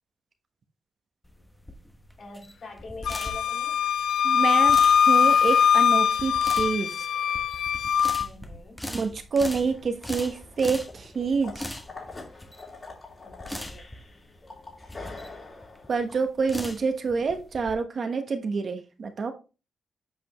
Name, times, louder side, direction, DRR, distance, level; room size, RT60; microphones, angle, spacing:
sound 1, 1.2-17.7, left 1 dB, 10° left, 1.0 m, -40 dB
voice 1, 1.3-1.9 2.2-3.8 8.2-8.9 13.2-13.8, left 3 dB, 55° left, 0 dB, 2.6 m, -45 dB
Wind instrument woodwind instrument, 3.1-8.3, left 8 dB, 80° left, 0.3 m, -21 dB
voice 2, 4.2-7.0 8.9-11.5 15.9-19.3, right 4 dB, 55° right, 7 dB, 1.1 m, -27 dB
sound 2, 9.5-16.1, left 3 dB, 35° left, 3.2 m, -45 dB
8.0 x 5.1 x 3.1 m, 0.31 s
cardioid pair, 85°, 0 cm